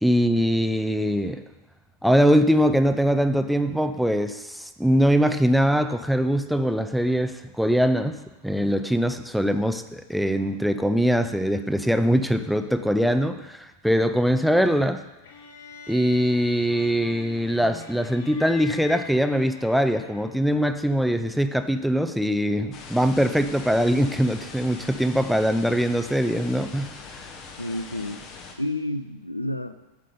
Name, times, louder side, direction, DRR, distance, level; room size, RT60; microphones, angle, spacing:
voice 1, 0.0-1.4 2.0-8.2 8.4-15.0 15.9-27.3, equal, ahead, 9 dB, 0.4 m, -22 dB
sound 1, 15.2-20.5, left 4 dB, 55° left, 0.9 m, -44 dB
sound 2, 22.7-28.6, left 4 dB, 35° left, 1.0 m, -42 dB
voice 2, 27.6-28.2 28.6-29.8, left 1 dB, 85° left, 11 dB, 0.4 m, -30 dB
7.5 x 5.0 x 5.4 m, 1.0 s
figure-of-eight pair, 90°, 0 cm